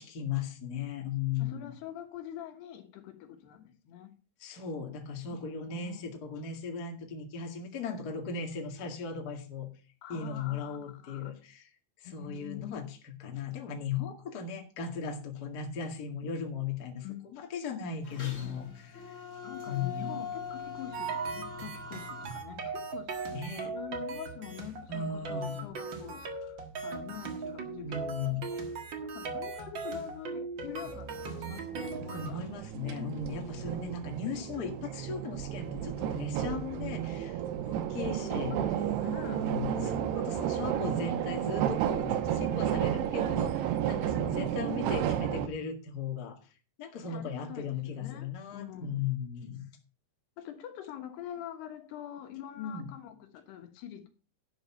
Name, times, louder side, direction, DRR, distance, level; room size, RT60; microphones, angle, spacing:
voice 1, 0.0-1.7 4.4-9.7 10.1-11.7 12.0-19.1 19.7-20.2 23.3-23.7 24.9-25.7 27.8-28.4 32.1-38.6 39.3-46.4 46.8-49.7 52.6-52.9, left 6 dB, 40° left, 1.5 m, -37 dB
voice 2, 1.4-4.1 5.3-6.1 10.0-11.3 12.1-12.8 17.0-17.3 19.4-28.4 29.0-32.4 33.1-33.3 38.4-39.5 47.0-49.1 50.4-54.1, left 11 dB, 80° left, 3.4 m, -45 dB
sound 1, 18.0-22.2, left 6 dB, 60° left, 0.8 m, -42 dB
sound 2, 20.9-32.3, right 4 dB, 55° right, 1.3 m, -38 dB
sound 3, 30.7-45.5, right 10 dB, 85° right, 2.9 m, -32 dB
11.5 x 6.5 x 5.7 m
omnidirectional pair, 4.7 m